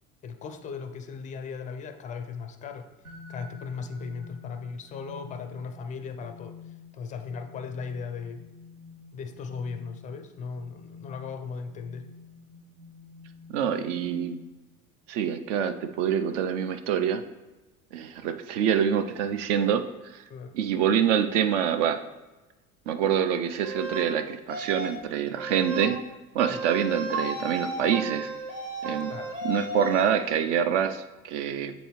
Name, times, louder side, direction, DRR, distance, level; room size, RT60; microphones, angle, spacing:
voice 1, 0.2-2.9 3.3-6.5 6.9-8.4 9.1-12.1 20.3-20.6 26.5-26.6 29.1-29.4, left 5 dB, 20° left, 7 dB, 0.4 m, -37 dB
sound 1, 3.0-14.8, left 4 dB, 85° right, 1.1 m, -49 dB
voice 2, 13.5-14.4 15.1-17.2 17.9-20.2 20.5-22.0 22.9-26.0 26.3-28.3 28.8-29.1 29.4-31.7, right 8 dB, 55° right, 10 dB, 0.6 m, -26 dB
sound 2, 23.6-24.0 24.5-25.0 25.4-25.9 26.4-30.0, right 2 dB, 35° right, 1.5 m, -34 dB
7.7 x 3.9 x 3.1 m, 1.1 s
figure-of-eight pair, 65°, 44 cm